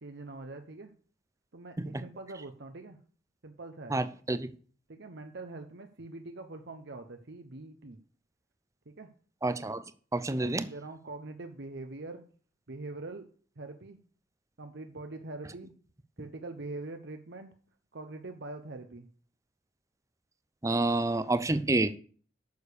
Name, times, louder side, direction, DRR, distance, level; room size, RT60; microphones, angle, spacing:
voice 1, 0.0-0.9 1.5-3.0 3.4-4.0 4.9-8.0 8.9-9.1 10.4-12.2 12.7-13.3 13.6-14.0 14.6-15.7 16.2-17.5 17.9-19.1, right 2 dB, 60° right, 6 dB, 0.9 m, -43 dB
voice 2, 3.9-4.5 9.4-9.8 10.1-10.6 20.6-21.9, right 2 dB, 15° right, 14 dB, 0.6 m, -28 dB
9.5 x 6.7 x 6.8 m, 0.44 s
head